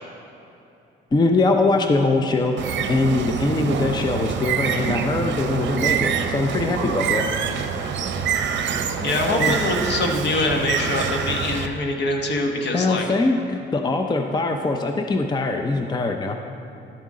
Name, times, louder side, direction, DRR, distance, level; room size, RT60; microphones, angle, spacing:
voice 1, 1.1-7.3 9.4-9.5 12.7-16.4, left 3 dB, 20° left, 4 dB, 0.5 m, -22 dB
Bird, 2.6-11.7, right 7 dB, 65° right, 0.6 m, -25 dB
voice 2, 9.0-13.0, left 2 dB, 60° left, 2 dB, 1.2 m, -24 dB
12.0 x 7.2 x 3.7 m, 2.8 s
cardioid pair, 90°, 20 cm